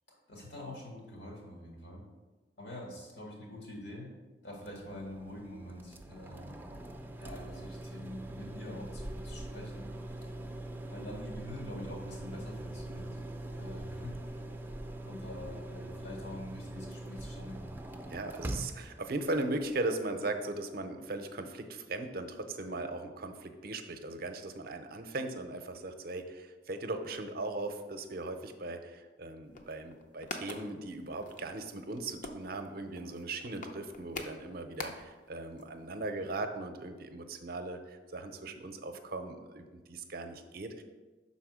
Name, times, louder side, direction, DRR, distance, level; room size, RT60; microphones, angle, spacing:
voice 1, 0.3-2.0 2.6-4.1 4.4-6.5 7.2-9.9 10.9-13.2 13.5-14.4 15.0-17.7, left 1 dB, 80° left, -2 dB, 2.1 m, -45 dB
sound 1, 4.6-19.8, right 1 dB, 10° right, 0.5 m, -43 dB
voice 2, 18.1-40.8, right 2 dB, 60° right, 7 dB, 0.6 m, -38 dB
sound 2, 29.4-35.3 35.6-35.7 35.9-36.1, left 3 dB, 50° left, 0.6 m, -45 dB
5.7 x 4.2 x 6.2 m, 1.3 s
head